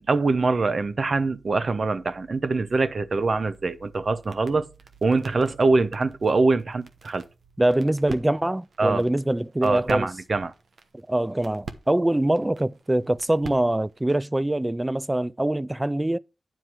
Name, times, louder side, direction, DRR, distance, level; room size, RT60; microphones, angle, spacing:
voice 1, 0.0-4.7 5.0-7.2 8.8-9.0 9.6-10.5, right 3 dB, 55° right, 0.9 m, -23 dB
sound 1, 3.4-14.3, right 4 dB, 80° right, 1.1 m, -46 dB
voice 2, 7.6-10.1 11.1-16.2, right 1 dB, 20° right, 0.4 m, -24 dB
9.9 x 4.5 x 6.1 m
cardioid pair, 50°, 0 cm